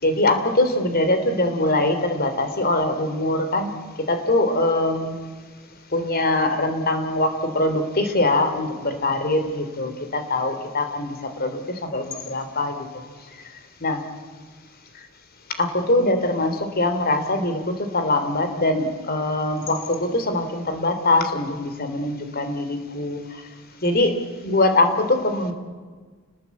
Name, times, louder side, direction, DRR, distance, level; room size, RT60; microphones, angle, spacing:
voice 1, 0.0-3.7 4.1-5.3 5.9-12.8 13.8-14.0 15.6-23.2 23.8-24.2 24.4-25.5, left 2 dB, 50° left, 8 dB, 3.2 m, -22 dB
29.5 x 20.0 x 8.4 m, 1.5 s
head